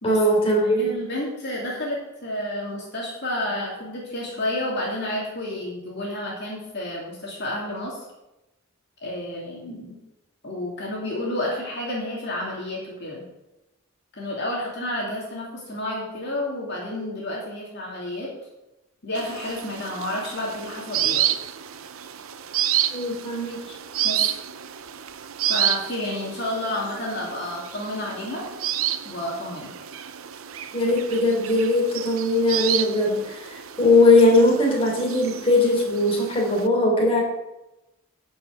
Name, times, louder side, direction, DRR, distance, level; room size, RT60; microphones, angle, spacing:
voice 1, 0.0-0.9 22.9-23.6 30.7-37.2, left 2 dB, 30° left, -1 dB, 3.4 m, -20 dB
voice 2, 0.6-8.1 9.0-10.0 10.4-13.2 14.1-18.3 19.0-21.2 24.0-24.3 25.5-28.5 29.0-29.7, left 1 dB, 55° left, -3 dB, 2.8 m, -30 dB
sound 1, 19.1-36.7, right 11 dB, 75° right, 0.7 m, -30 dB
11.5 x 5.8 x 7.8 m, 0.96 s
head